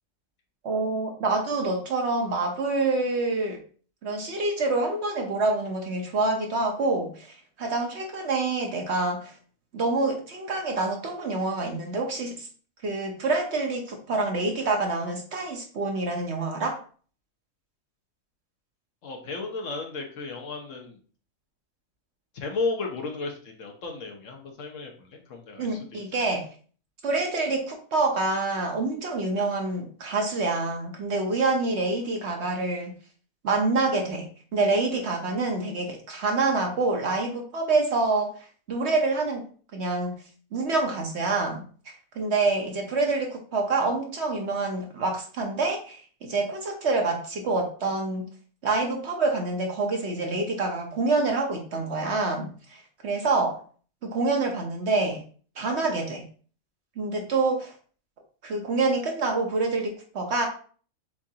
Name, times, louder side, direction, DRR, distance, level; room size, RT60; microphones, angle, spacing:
voice 1, 0.6-3.6 4.0-9.3 9.7-12.5 12.8-16.8 25.6-26.5 27.0-32.9 33.4-38.3 38.7-39.5 39.7-40.2 40.5-41.6 42.2-48.2 48.6-53.6 54.0-55.2 55.6-56.2 57.0-57.7 58.4-60.5, right 3 dB, 60° right, 2 dB, 1.0 m, -27 dB
voice 2, 19.0-21.0 22.3-26.2, left 3 dB, 65° left, 2 dB, 1.3 m, -34 dB
7.2 x 2.5 x 2.8 m, 0.42 s
omnidirectional pair, 1.4 m